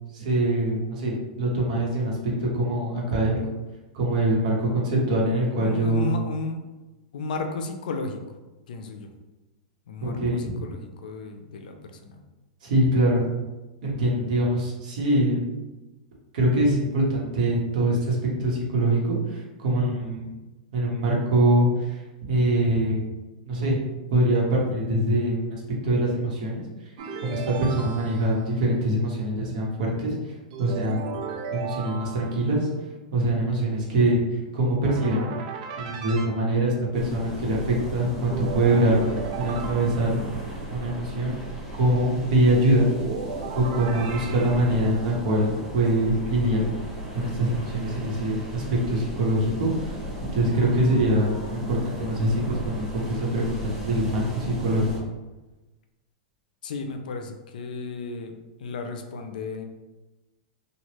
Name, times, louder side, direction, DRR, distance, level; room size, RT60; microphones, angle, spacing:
voice 1, 0.1-3.4 3.9-6.1 10.0-10.4 12.6-13.3 13.8-15.4 16.3-20.3 20.7-22.0 22.3-23.1 23.5-23.8 24.1-26.6 27.2-30.2 30.6-31.2 31.5-32.7 33.1-34.2 34.5-35.3 35.8-40.2 40.7-41.4 41.8-42.9 43.5-46.7 47.1-50.0 50.3-54.9, right 1 dB, 70° right, -3 dB, 1.1 m, -24 dB
voice 2, 5.6-6.7 7.1-8.2 8.7-9.1 9.9-12.2 56.6-59.6, left 3 dB, 85° left, 5 dB, 0.5 m, -34 dB
sound 1, 27.0-28.5 30.5-32.6 34.8-36.3 38.3-40.4 42.8-44.9, right 5 dB, 55° right, 0.4 m, -35 dB
sound 2, 36.9-55.0, right 1 dB, 5° right, 0.9 m, -36 dB
3.2 x 2.4 x 3.0 m, 1.1 s
supercardioid pair, 160°, 4 cm